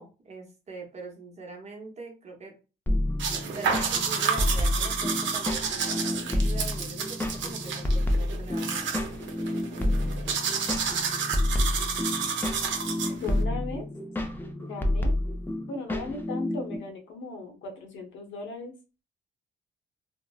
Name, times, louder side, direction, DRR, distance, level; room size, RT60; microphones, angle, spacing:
voice 1, 0.0-2.5 3.5-9.1, right 3 dB, 35° right, 1 dB, 0.8 m, -43 dB
sound 1, 2.9-16.8, left 1 dB, 10° left, 0.4 m, -29 dB
sound 2, 3.2-13.4, right 6 dB, 70° right, 0.6 m, -31 dB
voice 2, 13.2-13.8 14.6-15.1 15.6-18.7, left 3 dB, 75° left, 2 dB, 0.8 m, -37 dB
2.7 x 2.0 x 2.3 m, 0.32 s
cardioid pair, 90°, 20 cm